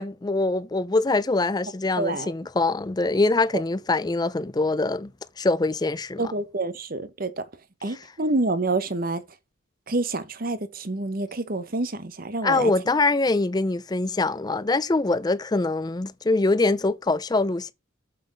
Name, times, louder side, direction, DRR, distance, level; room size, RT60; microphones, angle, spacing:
voice 1, 0.0-5.1 5.4-6.3 12.4-17.7, left 3 dB, 20° left, 0.4 m, -24 dB
voice 2, 2.0-2.3 6.2-7.5 7.8-9.2 9.9-12.7, right 2 dB, 45° right, 1.0 m, -27 dB
7.5 x 5.5 x 5.2 m
head